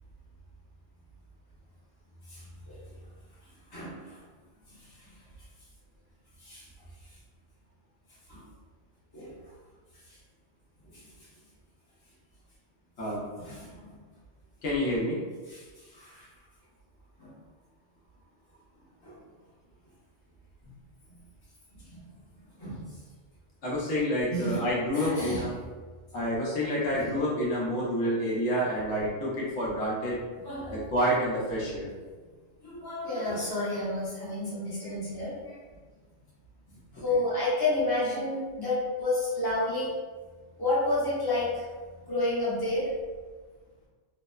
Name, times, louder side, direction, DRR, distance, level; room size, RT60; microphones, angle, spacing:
voice 1, 2.3-2.8 3.7-4.2 4.7-5.2 6.4-6.7 8.3-8.4 9.1-9.3 10.1-10.2 10.9-11.1 13.4-14.0 15.5-16.3 17.2-17.3 19.0-19.1 20.6-20.7 21.7-22.0 22.6-23.0 24.3-24.6 24.9-25.4 26.9-27.1 30.4-30.8 32.6-35.6 36.9-39.9 40.6-41.6 42.1-42.9, left 2 dB, 20° left, -9 dB, 0.8 m, -31 dB
voice 2, 13.0-13.3 14.6-15.2 23.6-25.6 26.1-30.2 30.7-31.9 36.9-37.0, equal, 75° left, -6 dB, 1.0 m, -28 dB
3.0 x 2.0 x 2.2 m, 1.4 s
omnidirectional pair, 1.2 m